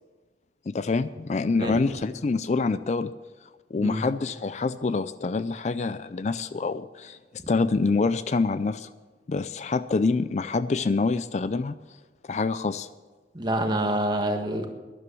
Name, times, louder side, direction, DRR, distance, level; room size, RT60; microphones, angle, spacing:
voice 1, 0.7-3.1 3.7-7.2 7.5-8.9 9.3-11.7 12.2-12.9, left 4 dB, 40° left, 14 dB, 0.4 m, -26 dB
voice 2, 13.3-14.7, right 1 dB, 25° right, 4 dB, 1.5 m, -26 dB
12.0 x 11.0 x 6.9 m, 1.3 s
head